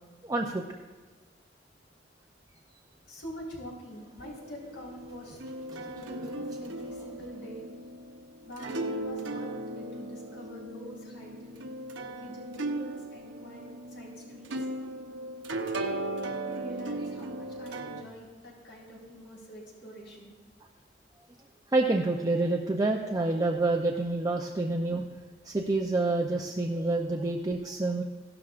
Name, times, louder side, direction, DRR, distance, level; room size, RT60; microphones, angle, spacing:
voice 1, 0.2-0.6 5.7-5.8 21.7-25.1 25.4-28.0, right 2 dB, 20° right, 1 dB, 0.6 m, -28 dB
voice 2, 3.1-5.4 5.8-7.6 8.4-9.5 9.8-11.7 12.1-14.5 15.9-20.3, equal, 85° left, -4 dB, 4.1 m, -45 dB
sound 1, 4.2-18.0, right 2 dB, 85° right, 0.8 m, -37 dB
16.5 x 12.0 x 2.5 m, 1.3 s
head